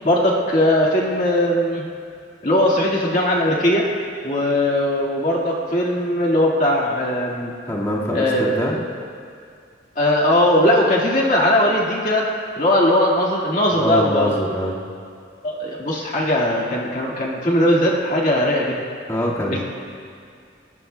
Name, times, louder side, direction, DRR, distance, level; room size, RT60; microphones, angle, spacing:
voice 1, 0.0-1.8 2.4-3.9 4.2-7.5 8.1-8.6 10.0-12.3 12.6-14.4 15.4-18.8 19.5-19.6, left 1 dB, 45° left, -3 dB, 1.8 m, -19 dB
voice 2, 7.7-8.8 13.7-14.8 19.1-19.6, equal, 20° left, -6 dB, 1.8 m, -23 dB
22.0 x 20.5 x 2.2 m, 2.3 s
head